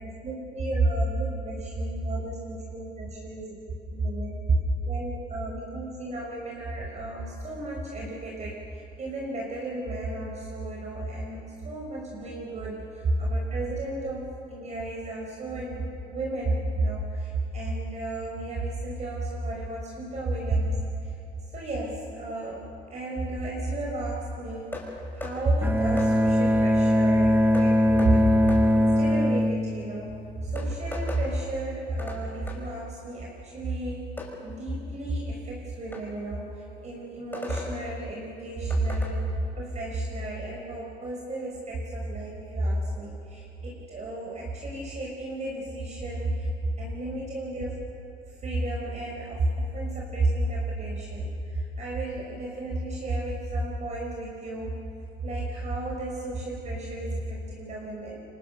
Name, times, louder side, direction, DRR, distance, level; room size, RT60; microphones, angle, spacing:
voice 1, 0.0-3.6 3.9-4.6 4.9-21.1 21.5-30.1 30.4-34.1 34.4-46.5 46.8-47.8 48.4-54.7 55.2-58.2, right 2 dB, 40° right, -2 dB, 5.4 m, -31 dB
sound 1, 24.7-24.9 25.2-25.4 26.0-26.1 27.5-27.7 28.0-28.1 28.5-28.6 30.0-30.1 30.6-31.2 32.0-32.2 32.5-32.6 34.2-34.3 35.9-36.0 37.3-37.7 38.7-39.1, left 3 dB, 10° left, 6.1 m, -37 dB
Bowed string instrument, 25.6-30.6, equal, 10° right, 1.2 m, -22 dB
29.5 x 23.5 x 6.9 m, 2.9 s
cardioid pair, 110°, 17 cm